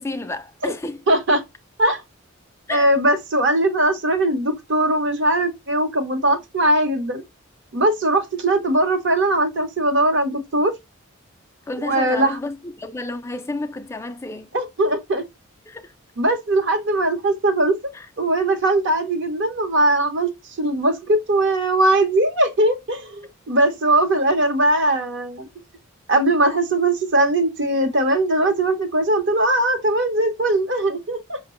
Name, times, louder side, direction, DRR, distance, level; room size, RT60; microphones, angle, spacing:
voice 1, 0.0-1.0 2.7-2.9 11.7-14.5 15.7-15.9 17.9-18.1, left 2 dB, 10° left, 0.3 m, -31 dB
voice 2, 1.1-1.4 1.8-2.0 2.7-7.2 7.7-10.7 11.8-12.4 14.5-15.2 16.2-17.8 18.2-20.3 20.6-25.5 26.1-31.4, right 1 dB, 55° right, 0.8 m, -20 dB
5.4 x 2.1 x 2.9 m
head